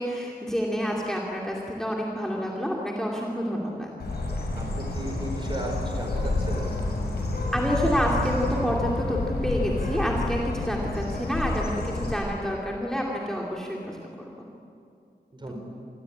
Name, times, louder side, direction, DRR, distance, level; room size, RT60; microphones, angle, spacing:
voice 1, 0.0-3.9 7.5-14.3 15.4-15.5, equal, 5° left, -3 dB, 2.7 m, -28 dB
Bird, 4.0-12.1, left 2 dB, 65° left, 6.9 m, -29 dB
voice 2, 4.5-6.6 15.4-15.5, right 1 dB, 25° right, 3 dB, 5.0 m, -35 dB
27.5 x 21.5 x 8.8 m, 2.4 s
wide cardioid pair, 170°, 17 cm